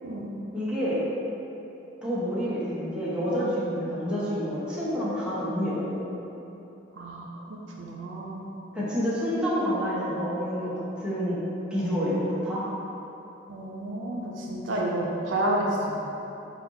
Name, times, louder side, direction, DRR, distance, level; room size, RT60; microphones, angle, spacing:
voice 1, 0.5-1.0 2.0-6.0 8.7-11.4 11.7-12.6, equal, 5° right, -10 dB, 0.8 m, -28 dB
voice 2, 7.0-7.3 7.8-8.5 13.5-15.7, right 1 dB, 80° right, -3 dB, 0.5 m, -30 dB
4.3 x 2.4 x 3.8 m, 3.0 s
head